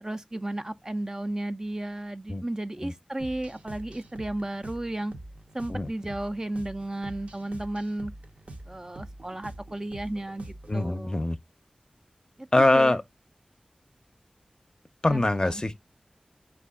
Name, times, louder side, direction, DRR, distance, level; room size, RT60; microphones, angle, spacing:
voice 1, 0.0-5.1 5.5-8.1 8.7-11.2 12.4-13.0 15.1-15.6, right 1 dB, 25° right, 0.3 m, -34 dB
sound 1, 3.2-10.9, right 2 dB, 65° right, 0.6 m, -45 dB
voice 2, 10.7-11.4 12.5-13.0 15.0-15.8, left 2 dB, 35° left, 0.5 m, -23 dB
4.6 x 2.5 x 3.5 m
wide cardioid pair, 50°, 2 cm